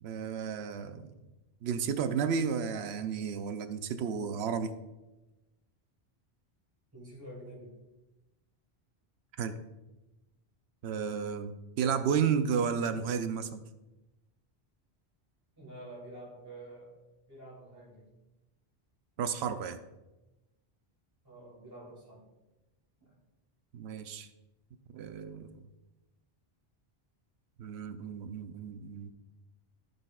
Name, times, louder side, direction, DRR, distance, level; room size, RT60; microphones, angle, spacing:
voice 1, 0.0-1.1 1.6-4.7 9.4-9.6 10.8-13.6 19.2-19.8 23.7-24.3 24.9-25.6 27.6-29.1, right 7 dB, 90° right, 10 dB, 0.9 m, -32 dB
voice 2, 6.9-7.7 15.6-17.0 17.3-18.1 21.2-22.3 23.0-23.1, right 1 dB, 20° right, -6 dB, 2.7 m, -48 dB
15.0 x 5.3 x 2.4 m, 1.0 s
omnidirectional pair, 1.1 m